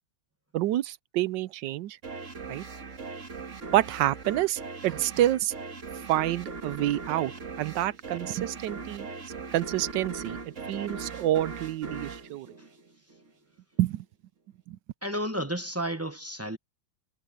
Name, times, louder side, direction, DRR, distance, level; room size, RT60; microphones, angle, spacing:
voice 1, 0.5-2.0 2.5-2.6 3.7-5.5 6.1-7.3 7.6-9.1 9.5-10.4 10.7-12.5 13.8-14.0 14.7-14.8, right 14 dB, 80° right, 1.3 m, -28 dB
sound 1, 2.0-13.3, right 4 dB, 45° right, 2.0 m, -40 dB
voice 2, 15.0-16.6, right 1 dB, 15° right, 0.7 m, -32 dB
omnidirectional pair, 2.0 m